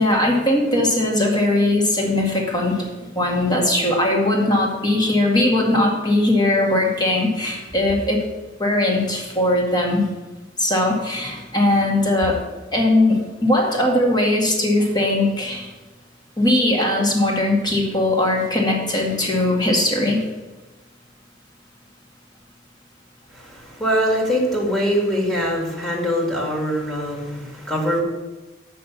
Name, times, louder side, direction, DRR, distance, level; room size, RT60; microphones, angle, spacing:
voice 1, 0.0-2.9 3.2-8.2 8.6-10.1 10.6-12.4 12.7-15.7 16.4-20.2, left 1 dB, 20° left, -1 dB, 1.9 m, -19 dB
voice 2, 23.3-28.0, equal, ahead, -4 dB, 2.3 m, -23 dB
6.6 x 6.3 x 7.1 m, 1.2 s
head